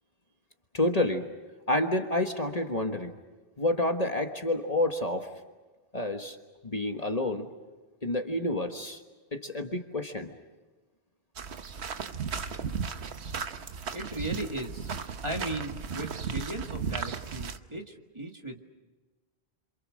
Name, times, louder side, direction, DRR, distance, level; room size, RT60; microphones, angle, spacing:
voice 1, 0.7-1.2 1.7-3.2 3.6-5.3 5.9-6.4 6.6-7.5 8.0-9.0 9.3-10.4, left 1 dB, 35° left, 4 dB, 1.5 m, -29 dB
Footsteps Gravel A, 11.4-17.6, right 6 dB, 85° right, 1.3 m, -35 dB
voice 2, 13.9-18.6, right 2 dB, 25° right, 2 dB, 2.1 m, -37 dB
28.0 x 27.0 x 6.4 m, 1.3 s
omnidirectional pair, 1.1 m